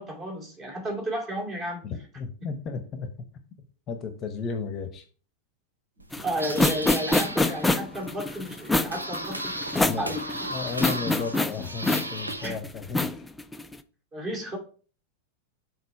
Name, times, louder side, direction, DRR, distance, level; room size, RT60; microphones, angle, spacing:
voice 1, 0.0-1.8 2.4-2.5 6.2-10.2 12.4-12.6 14.1-14.6, right 1 dB, 30° right, 1 dB, 2.6 m, -33 dB
voice 2, 1.8-3.1 3.9-5.0 9.8-10.1 10.5-13.2, left 5 dB, 30° left, 7 dB, 0.9 m, -34 dB
sound 1, 6.0-12.5, right 1 dB, 85° right, 0.7 m, -36 dB
sound 2, 6.1-13.8, left 2 dB, 5° left, 0.4 m, -26 dB
6.8 x 4.0 x 4.3 m, 0.41 s
figure-of-eight pair, 90°, 0 cm